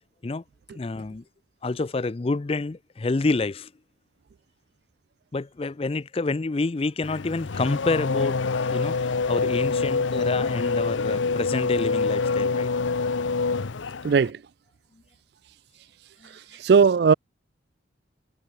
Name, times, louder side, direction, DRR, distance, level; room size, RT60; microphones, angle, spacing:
voice 1, 0.7-1.2 1.6-3.7 5.3-12.7 16.2-16.3, left 3 dB, 30° left, 0.4 m, -28 dB
Race car auto racing / Accelerating revving vroom, 7.0-14.3, left 4 dB, 80° left, 0.7 m, -26 dB
voice 2, 14.0-14.4 16.6-17.1, right 5 dB, 55° right, 0.3 m, -17 dB
head